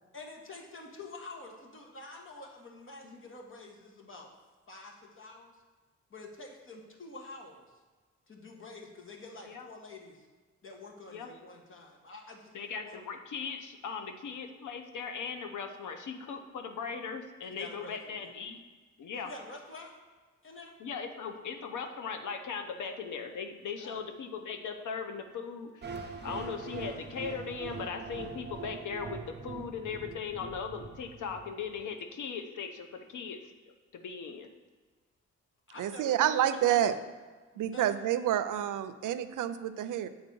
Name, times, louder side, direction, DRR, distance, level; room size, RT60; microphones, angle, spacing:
voice 1, 0.1-4.3 4.7-5.6 6.1-7.7 8.3-10.3 10.6-12.5 12.8-13.0 17.5-18.2 19.2-19.9 20.4-20.7 23.8-24.0 35.7-36.8 37.7-37.9, left 2 dB, 40° left, 1 dB, 1.4 m, -48 dB
voice 2, 12.5-18.6 19.0-19.3 20.8-33.4 33.9-34.5, left 6 dB, 75° left, 5 dB, 0.8 m, -39 dB
sound 1, 25.8-31.8, right 5 dB, 35° right, 0.8 m, -43 dB
voice 3, 35.8-37.0 37.6-40.1, right 11 dB, 85° right, 12 dB, 0.5 m, -28 dB
8.0 x 4.0 x 5.4 m, 1.3 s
cardioid pair, 105°, 30 cm